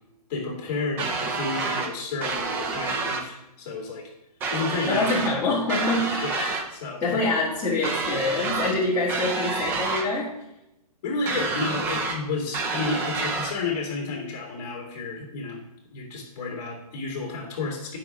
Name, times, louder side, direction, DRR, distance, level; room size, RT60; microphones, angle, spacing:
voice 1, 0.3-4.1 4.5-5.1 5.4-5.5 6.2-7.2 11.0-15.6 15.9-18.0, left 3 dB, 30° left, -2 dB, 2.3 m, -31 dB
sound 1, 1.0-1.9 2.2-3.3 4.4-5.4 5.7-6.7 7.8-8.8 9.1-10.1 11.3-12.2 12.5-13.5, right 4 dB, 10° right, 0.4 m, -28 dB
voice 2, 4.9-6.3 7.0-10.3, left 2 dB, 10° left, -10 dB, 1.6 m, -25 dB
9.4 x 5.9 x 3.6 m, 0.88 s
hypercardioid pair, 150°, 20 cm